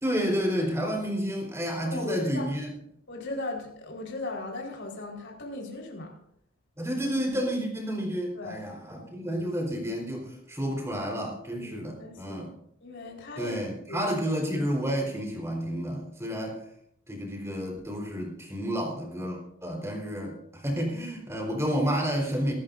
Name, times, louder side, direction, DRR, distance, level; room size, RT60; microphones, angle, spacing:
voice 1, 0.0-2.7 6.8-12.5 13.4-16.6 17.1-22.5, equal, 15° right, 0 dB, 4.0 m, -30 dB
voice 2, 1.8-2.5 3.1-6.1 8.3-8.6 11.6-12.4 12.8-13.6 13.9-14.1, left 2 dB, 55° left, 0 dB, 4.3 m, -37 dB
25.5 x 12.5 x 2.6 m, 0.72 s
head